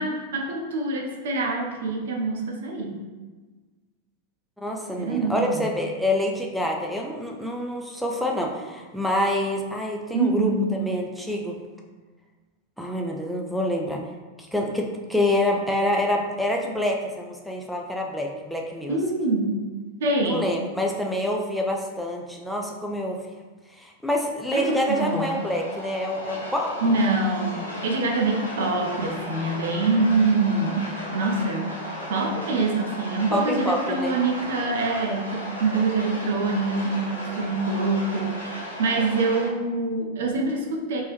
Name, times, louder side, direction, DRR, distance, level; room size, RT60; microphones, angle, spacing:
voice 1, 0.0-3.0 5.0-5.7 10.1-10.7 18.9-19.6 20.0-20.5 24.5-25.3 26.8-31.8 32.1-41.0, right 3 dB, 60° right, 1 dB, 0.5 m, -25 dB
voice 2, 4.6-10.5 10.8-11.6 12.8-14.0 14.5-19.0 20.2-23.2 23.8-26.7 33.3-34.2, left 1 dB, ahead, 0 dB, 0.3 m, -26 dB
sound 1, 24.5-39.5, equal, 80° left, 0.7 m, -36 dB
3.0 x 2.7 x 3.1 m, 1.3 s
figure-of-eight pair, 90°, 0 cm